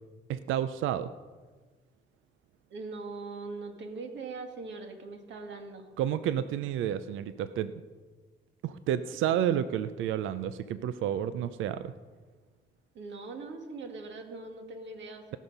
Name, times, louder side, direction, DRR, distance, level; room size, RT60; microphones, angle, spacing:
voice 1, 0.3-1.1 6.0-7.7 8.6-11.9, right 10 dB, 85° right, 13 dB, 0.5 m, -30 dB
voice 2, 2.7-5.9 12.9-15.4, right 3 dB, 65° right, 4 dB, 2.0 m, -41 dB
18.0 x 6.4 x 5.5 m, 1.4 s
cardioid pair, 90°, 20 cm